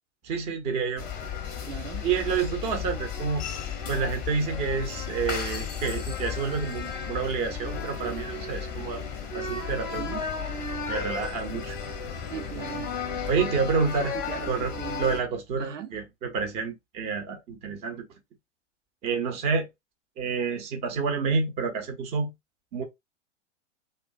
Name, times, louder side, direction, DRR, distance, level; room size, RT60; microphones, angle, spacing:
voice 1, 0.2-1.1 2.0-3.4 3.9-9.0 9.3-10.1 10.9-11.8 13.3-14.2 14.5-18.1 19.0-19.7 20.2-22.3 22.7-22.8, right 5 dB, 20° right, 0.5 m, -29 dB
sound 1, 1.0-15.2, left 6 dB, 25° left, 0.6 m, -34 dB
voice 2, 1.7-2.0 10.0-10.2 12.3-12.9 14.1-15.1 15.6-15.9, right 7 dB, 85° right, 0.5 m, -38 dB
2.4 x 2.3 x 2.4 m
figure-of-eight pair, 105°, 37 cm